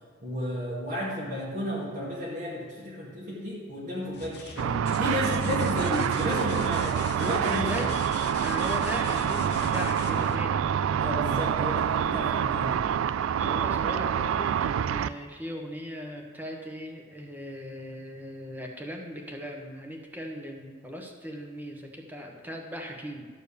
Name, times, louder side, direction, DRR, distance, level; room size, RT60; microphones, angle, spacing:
voice 1, 0.2-7.9 11.0-12.9, left 1 dB, 40° right, -7 dB, 2.0 m, -32 dB
sound 1, 4.0-11.6 13.4-13.9, left 5 dB, 60° left, 0.8 m, -42 dB
Car / Traffic noise roadway noise / Engine, 4.6-15.1, right 8 dB, 75° right, 0.3 m, -27 dB
voice 2, 8.4-10.7 13.3-23.3, equal, 10° right, 1 dB, 1.1 m, -38 dB
12.0 x 4.5 x 6.9 m, 1.5 s
head